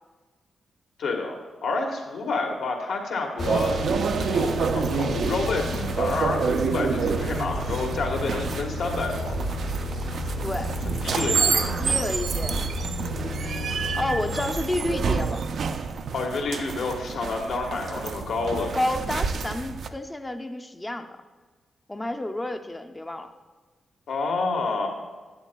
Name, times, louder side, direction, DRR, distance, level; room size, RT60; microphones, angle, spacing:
voice 1, 1.0-3.8 4.2-9.4 11.0-11.7 16.1-18.8 24.1-24.9, left 3 dB, 75° left, 1 dB, 1.4 m, -29 dB
sound 1, 3.4-15.1, left 5 dB, 55° left, 0.8 m, -34 dB
sound 2, 3.4-19.9, right 5 dB, 60° right, 0.4 m, -28 dB
voice 2, 10.4-10.8 11.3-12.6 13.4-15.5 18.7-21.1 21.9-23.3, left 1 dB, 15° left, 7 dB, 0.5 m, -30 dB
11.5 x 8.7 x 2.3 m, 1.4 s
wide cardioid pair, 135°, 0 cm